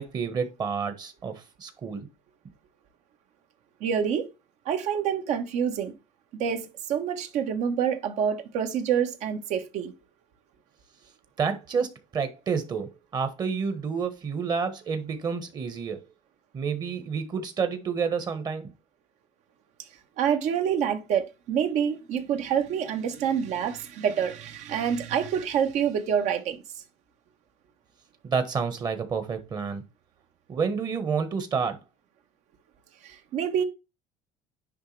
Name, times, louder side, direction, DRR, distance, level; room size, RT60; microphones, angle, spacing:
voice 1, 0.0-2.0 11.4-16.0 16.5-18.7 28.2-29.8 30.5-31.8, right 5 dB, 30° right, 1.4 m, -29 dB
voice 2, 3.8-4.3 4.6-5.9 6.4-9.9 20.2-26.6 33.0-33.6, right 8 dB, 55° right, 1.4 m, -27 dB
10.0 x 3.4 x 3.3 m
cardioid pair, 155°, 14 cm